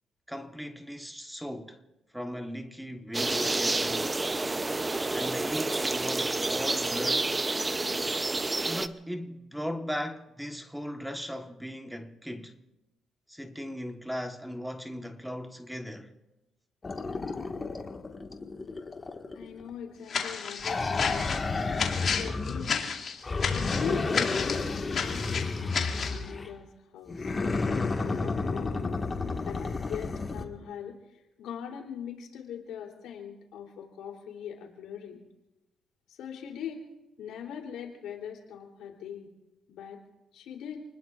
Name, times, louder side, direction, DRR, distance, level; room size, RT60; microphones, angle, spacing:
voice 1, 0.3-1.8 2.1-4.2 5.1-7.3 8.7-12.6 13.3-16.1, equal, ahead, 1.2 m, -38 dB
sound 1, 3.1-8.9, right 2 dB, 20° right, 0.6 m, -29 dB
sound 2, 16.8-19.7 20.6-22.8 23.2-26.5 27.1-30.4, left 3 dB, 30° left, 1.6 m, -31 dB
voice 2, 19.3-21.3 22.0-22.8 23.4-26.7 26.9-27.3 27.8-28.9 29.4-31.0 31.4-35.2 36.1-36.8 37.2-39.3 39.7-40.0 40.3-40.8, left 8 dB, 85° left, 3.2 m, -41 dB
sound 3, 20.1-26.2, left 6 dB, 55° left, 2.4 m, -32 dB
29.0 x 20.0 x 2.5 m
cardioid pair, 90°, 0 cm